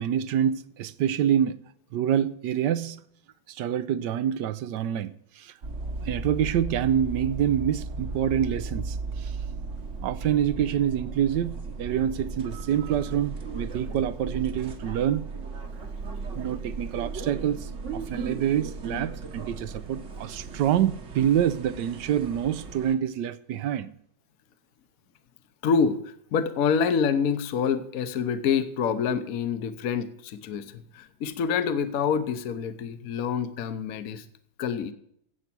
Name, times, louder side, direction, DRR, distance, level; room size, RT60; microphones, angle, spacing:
voice 1, 0.0-1.6 1.9-3.0 3.5-5.5 6.0-9.4 10.0-15.2 16.3-23.9, right 10 dB, 70° right, 1.2 m, -26 dB
sound 1, 5.6-22.9, right 3 dB, 45° right, 1.3 m, -36 dB
voice 2, 25.6-26.0 26.3-34.2 34.6-34.9, left 6 dB, 55° left, 1.2 m, -26 dB
15.5 x 8.1 x 6.0 m
omnidirectional pair, 2.1 m